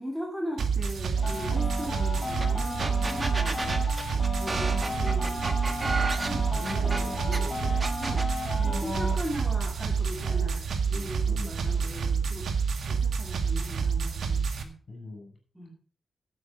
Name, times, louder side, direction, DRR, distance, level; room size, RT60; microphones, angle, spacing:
voice 1, 0.0-3.8 4.4-5.4 6.3-6.5 8.0-8.3 8.6-14.7 15.5-15.7, equal, 5° right, 0 dB, 2.4 m, -39 dB
sound 1, 0.6-14.6, right 5 dB, 70° right, 1.8 m, -28 dB
sound 2, 1.2-9.1, left 2 dB, 20° left, 5.4 m, -35 dB
sound 3, 2.4-2.5 2.8-7.4 7.8-8.3, right 3 dB, 20° right, 1.4 m, -32 dB
voice 2, 6.4-7.9 8.6-9.1 10.2-10.5 11.3-11.9 14.9-15.4, left 2 dB, 40° left, 1 dB, 7.7 m, -41 dB
12.0 x 9.1 x 5.3 m, 0.42 s
wide cardioid pair, 160°, 0 cm